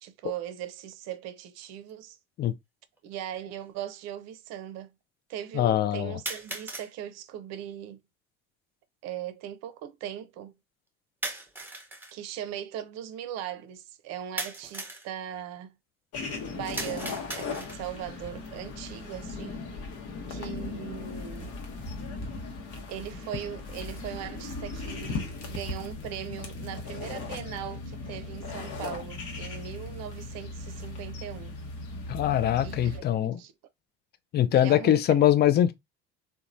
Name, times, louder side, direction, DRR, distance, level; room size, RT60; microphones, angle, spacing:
voice 1, 0.0-2.2 3.0-4.9 5.3-8.0 9.0-10.5 12.1-15.7 16.5-19.6 20.3-21.6 22.9-31.5 32.6-33.5 34.5-35.0, right 10 dB, 55° right, 0.6 m, -39 dB
sound 1, 1.9-2.0 3.0-3.1 6.3-6.9 11.2-12.1 14.4-15.1 16.8-17.9, right 2 dB, 5° right, 0.8 m, -37 dB
voice 2, 5.5-6.2 32.1-33.4 34.3-35.7, left 11 dB, 35° left, 0.4 m, -23 dB
sound 2, 16.1-33.0, left 3 dB, 50° left, 0.9 m, -38 dB
2.9 x 2.2 x 2.5 m
hypercardioid pair, 70°, 31 cm